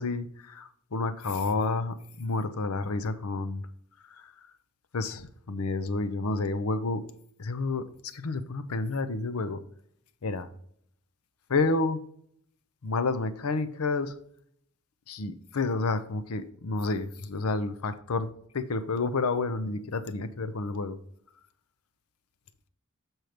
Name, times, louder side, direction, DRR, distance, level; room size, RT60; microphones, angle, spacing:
voice 1, 0.0-3.6 4.1-4.3 4.9-7.0 7.4-9.6 10.2-10.5 11.5-12.0 12.8-14.1 15.1-21.0, left 3 dB, 85° left, 0.7 m, -30 dB
7.8 x 4.5 x 5.0 m
head